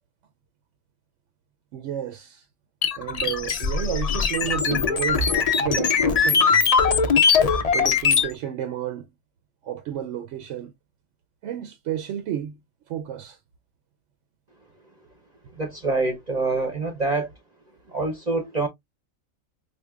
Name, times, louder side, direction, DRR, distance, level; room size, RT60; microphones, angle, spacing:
voice 1, 1.7-2.5 2.9-7.0 7.7-9.1 9.6-10.7 11.4-12.6 12.9-13.4, right 10 dB, 70° right, 0.9 m, -31 dB
sound 1, 2.8-8.3, left 5 dB, 70° left, 0.3 m, -21 dB
voice 2, 15.6-17.3 17.9-18.7, right 3 dB, 40° right, 0.7 m, -25 dB
4.4 x 2.5 x 2.3 m
omnidirectional pair, 1.4 m